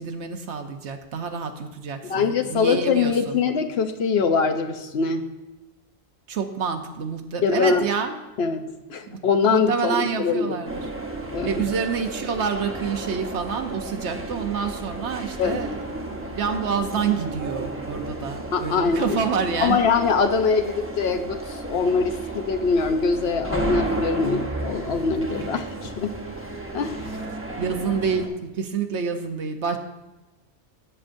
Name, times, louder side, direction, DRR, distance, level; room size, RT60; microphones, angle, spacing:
voice 1, 0.0-3.4 6.3-8.1 9.1-9.2 9.4-10.9 11.4-19.8 27.6-29.8, right 6 dB, 75° right, 6 dB, 1.1 m, -28 dB
voice 2, 2.0-5.2 7.4-7.9 8.4-10.6 11.3-11.5 15.4-15.6 18.5-19.2 19.6-26.2 26.7-27.1, left 5 dB, 65° left, 7 dB, 0.9 m, -23 dB
sound 1, 10.6-28.3, right 2 dB, 15° right, 0.8 m, -33 dB
12.5 x 8.7 x 2.6 m, 1.1 s
omnidirectional pair, 1.2 m